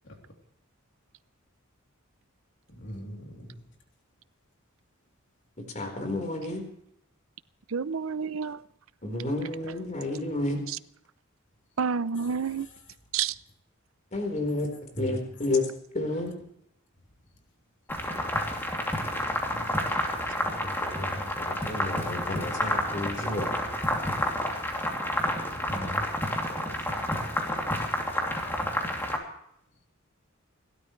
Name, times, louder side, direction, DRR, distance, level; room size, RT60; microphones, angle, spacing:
voice 1, 2.7-3.7 12.1-12.8 14.5-14.7 14.9-15.4 17.3-17.4 19.1-20.2 25.6-27.6, equal, 60° left, 3.2 m, -43 dB
voice 2, 5.7-6.6 9.0-10.6 14.1-14.7 15.0-15.7 15.9-16.3 20.5-23.5, left 2 dB, 35° left, 4.3 m, -31 dB
voice 3, 7.7-8.6 10.7-10.8 11.8-12.7 13.1-13.3 22.6-22.7, right 6 dB, 75° right, 0.6 m, -29 dB
sound 1, 17.9-29.2, left 1 dB, 10° left, 2.8 m, -30 dB
30.0 x 12.5 x 3.2 m
head